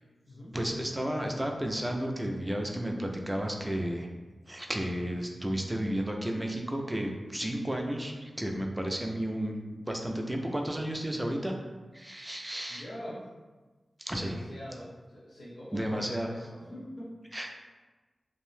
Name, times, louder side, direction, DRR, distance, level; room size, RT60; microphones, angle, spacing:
voice 1, 0.5-4.1 4.5-9.6 9.9-11.5 11.9-12.8 14.0-14.4 15.7-16.4 17.3-17.5, right 1 dB, 10° right, 1 dB, 0.3 m, -32 dB
voice 2, 12.7-13.2 14.1-17.1, equal, 70° left, -7 dB, 0.9 m, -44 dB
2.6 x 2.0 x 3.1 m, 1.3 s
wide cardioid pair, 100°, 0 cm